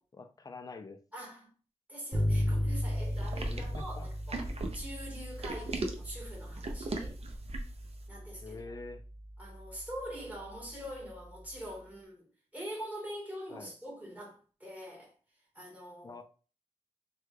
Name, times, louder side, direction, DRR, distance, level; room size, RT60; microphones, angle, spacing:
voice 1, 0.1-1.0 3.4-4.1 8.4-9.0 13.5-13.7 16.0-16.2, left 3 dB, 30° left, 0.4 m, -45 dB
voice 2, 1.1-1.5 1.9-4.4 4.7-7.2 8.1-8.7 9.4-15.1 15.5-16.1, equal, 10° right, 1.4 m, -44 dB
Bass guitar, 2.1-11.8, equal, 10° left, 1.0 m, -37 dB
sound 1, 3.1-7.9, right 2 dB, 55° right, 0.5 m, -38 dB
3.3 x 2.3 x 3.2 m
wide cardioid pair, 115°, 13 cm